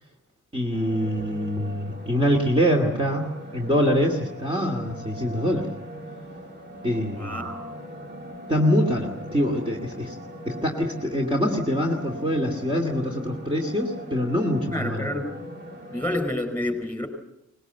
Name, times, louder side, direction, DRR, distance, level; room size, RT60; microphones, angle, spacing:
voice 1, 0.5-5.7 6.8-7.5 8.5-10.2 10.4-15.1, equal, 15° right, -1 dB, 2.4 m, -24 dB
sound 1, 0.7-16.2, equal, 35° right, 2.8 m, -40 dB
voice 2, 7.1-7.6 14.7-15.4 15.9-17.1, left 1 dB, 5° left, 7 dB, 4.7 m, -29 dB
24.0 x 20.5 x 8.2 m, 0.85 s
wide cardioid pair, 175°, 31 cm